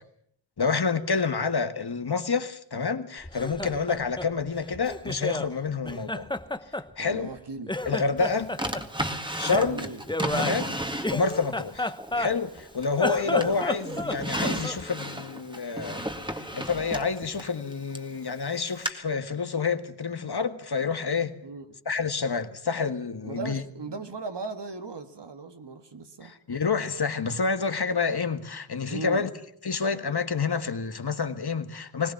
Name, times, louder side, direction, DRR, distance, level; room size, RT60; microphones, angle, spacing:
voice 1, 0.6-6.3 7.0-7.3 7.8-8.5 9.4-9.9 10.4-10.8 11.1-16.1 16.3-21.3 21.8-23.6 26.2-29.3 29.6-32.1, left 5 dB, 55° left, 1.7 m, -28 dB
Laughter, 3.2-5.5 5.8-7.4 7.7-8.8 9.5-12.6 12.9-14.9, left 2 dB, 10° left, 0.9 m, -32 dB
voice 2, 7.0-7.7 9.6-10.0 13.2-13.6 21.4-21.8 23.2-26.4 28.9-29.3, right 4 dB, 60° right, 1.9 m, -37 dB
Drawer open or close, 8.6-11.5 12.0-13.0 13.4-18.1 18.9-19.0, right 1 dB, 10° right, 2.0 m, -33 dB
21.0 x 18.5 x 7.1 m
wide cardioid pair, 65°, 46 cm